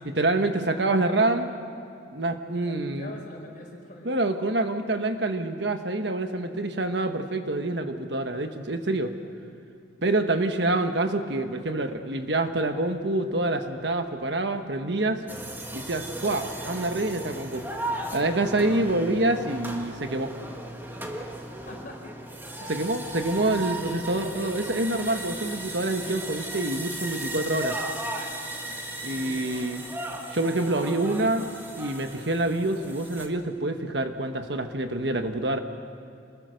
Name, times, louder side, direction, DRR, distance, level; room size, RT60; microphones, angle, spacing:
voice 1, 0.2-1.5 2.1-3.1 4.0-9.1 10.0-15.2 15.7-17.7 18.1-20.3 22.7-27.8 29.0-29.8 30.3-31.5 31.8-35.6, right 2 dB, 65° right, 7 dB, 1.4 m, -26 dB
voice 2, 2.6-4.1 21.6-22.7 23.4-24.0 29.1-29.8, left 2 dB, 45° left, -1 dB, 5.2 m, -44 dB
sound 1, 15.3-33.3, right 1 dB, 10° right, 1.8 m, -36 dB
27.5 x 20.5 x 6.5 m, 2.5 s
head